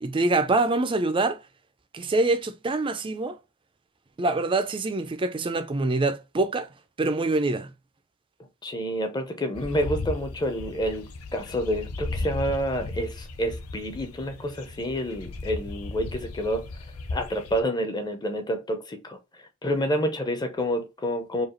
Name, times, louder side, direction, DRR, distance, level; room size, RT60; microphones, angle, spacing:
voice 1, 0.0-1.4 1.9-3.4 4.2-6.7 7.0-7.7, right 2 dB, 25° right, 0.4 m, -25 dB
voice 2, 8.6-16.7 17.1-19.2 19.6-21.5, equal, 20° left, 0.7 m, -28 dB
sound 1, 9.5-17.6, left 2 dB, 70° left, 0.6 m, -36 dB
4.7 x 2.4 x 3.0 m
head